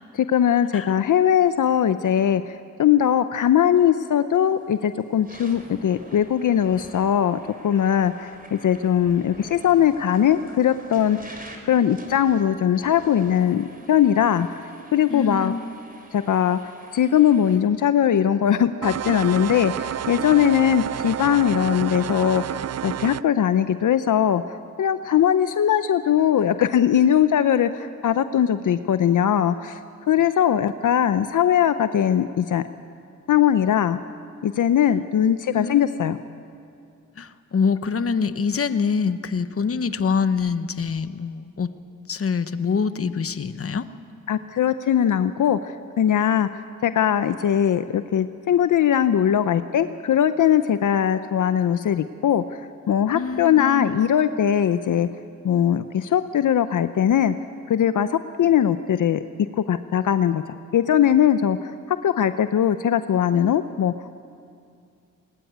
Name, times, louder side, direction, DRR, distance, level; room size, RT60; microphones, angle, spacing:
voice 1, 0.1-11.4 11.7-14.5 14.9-15.5 16.1-16.6 16.9-29.8 30.1-32.6 33.3-34.0 34.4-36.2 44.3-46.5 46.8-52.4 52.9-55.1 55.4-57.3 57.7-59.2 59.6-60.4 60.7-63.9, left 9 dB, 75° left, 11 dB, 0.7 m, -20 dB
sound 1, 4.4-4.6 5.1-17.6, right 1 dB, 25° right, 4.0 m, -47 dB
voice 2, 15.1-15.7 35.5-36.0 37.2-41.7 42.1-43.9 53.1-54.0, left 5 dB, 45° left, 11 dB, 1.1 m, -25 dB
sound 2, 18.8-23.2, right 10 dB, 55° right, 0.5 m, -29 dB
21.0 x 20.5 x 9.4 m, 2.4 s
cardioid pair, 90°, 31 cm